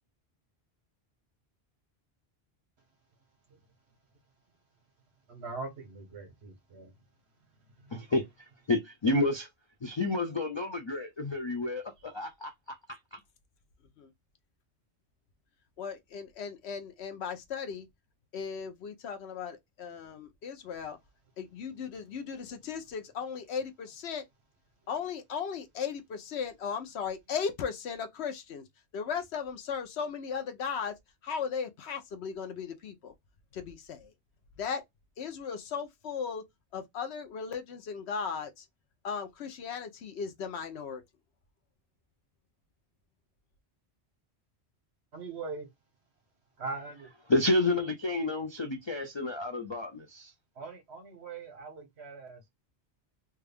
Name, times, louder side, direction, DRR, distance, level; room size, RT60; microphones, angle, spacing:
voice 1, 5.3-6.9 7.8-7.9 45.1-45.7 46.6-47.1 50.6-52.5, right 4 dB, 75° right, 1.5 m, -41 dB
voice 2, 7.9-8.2 8.7-9.5 9.8-13.2 47.3-50.3, left 2 dB, 50° left, 0.3 m, -30 dB
voice 3, 15.8-17.9 18.3-21.0 21.4-24.2 24.9-28.7 28.9-30.9 31.2-33.1 33.5-34.1 34.6-34.8 35.2-36.4 36.7-38.7 39.0-41.0, left 6 dB, 80° left, 1.0 m, -36 dB
3.3 x 2.3 x 3.4 m
omnidirectional pair, 1.1 m